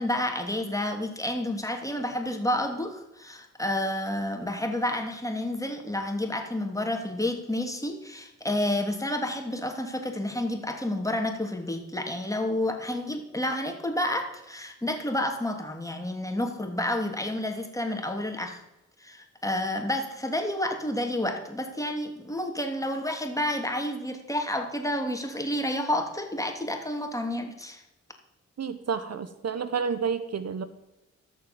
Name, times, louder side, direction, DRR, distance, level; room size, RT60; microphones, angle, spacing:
voice 1, 0.0-18.6 19.0-27.8, left 1 dB, 10° left, 3 dB, 2.9 m, -30 dB
voice 2, 28.6-30.6, right 6 dB, 55° right, 12 dB, 1.0 m, -30 dB
13.0 x 7.0 x 7.1 m, 0.93 s
supercardioid pair, 45°, 30 cm